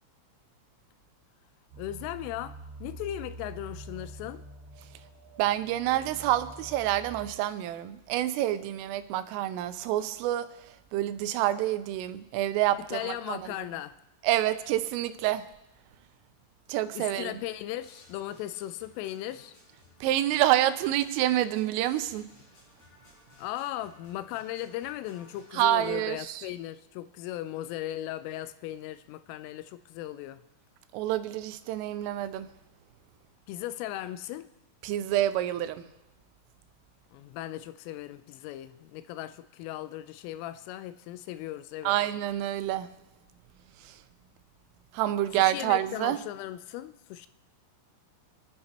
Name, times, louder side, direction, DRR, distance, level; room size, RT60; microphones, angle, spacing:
sound 1, 1.7-7.3, right 2 dB, 45° right, 4.3 m, -46 dB
voice 1, 1.8-4.4 12.9-14.0 17.0-19.5 23.4-30.4 33.5-34.5 37.1-41.9 45.4-47.3, left 13 dB, 85° left, 13 dB, 3.1 m, -37 dB
voice 2, 5.4-13.5 14.2-15.5 16.7-17.4 20.0-22.3 25.5-26.5 30.9-32.5 34.8-35.9 41.8-42.9 43.8-44.0 44.9-46.2, right 13 dB, 85° right, 11 dB, 3.2 m, -28 dB
on my way, 17.8-25.9, left 2 dB, 60° left, 8.5 m, -58 dB
27.5 x 9.6 x 2.9 m, 0.94 s
omnidirectional pair, 5.8 m